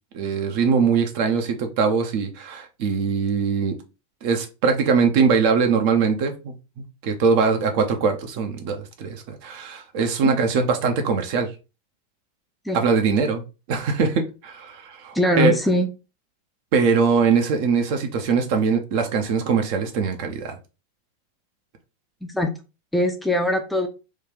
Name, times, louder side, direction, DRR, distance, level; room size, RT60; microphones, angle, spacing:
voice 1, 0.1-3.8 4.2-6.5 7.0-11.5 12.7-13.4 13.7-15.5 16.7-20.6, right 5 dB, 45° right, 0.6 m, -22 dB
voice 2, 15.1-15.9 22.2-22.5 22.9-23.9, left 1 dB, 5° left, 0.4 m, -21 dB
3.1 x 2.4 x 3.5 m
figure-of-eight pair, 90°, 0 cm